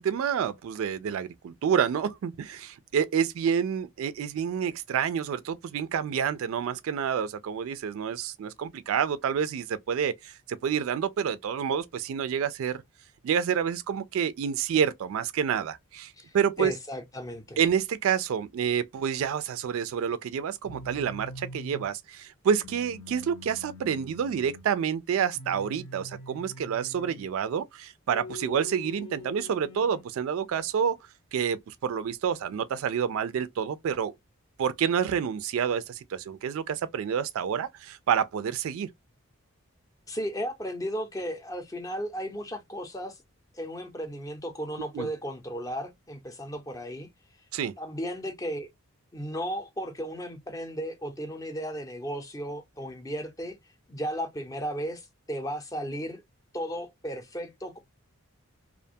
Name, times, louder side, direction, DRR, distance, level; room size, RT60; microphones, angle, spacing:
voice 1, 0.0-12.8 13.2-16.7 17.6-31.0 31.3-34.1 34.6-38.9 44.9-45.1 47.5-47.7, right 7 dB, 70° right, 0.3 m, -28 dB
voice 2, 16.2-17.6 40.1-43.2 43.5-47.1 47.8-48.7 49.1-53.6 53.9-56.2 56.5-57.8, equal, 15° left, 0.5 m, -35 dB
sound 1, 20.6-21.9 22.6-24.7 25.3-27.3 28.1-30.1, left 1 dB, 80° left, 0.9 m, -44 dB
2.4 x 2.2 x 2.6 m
head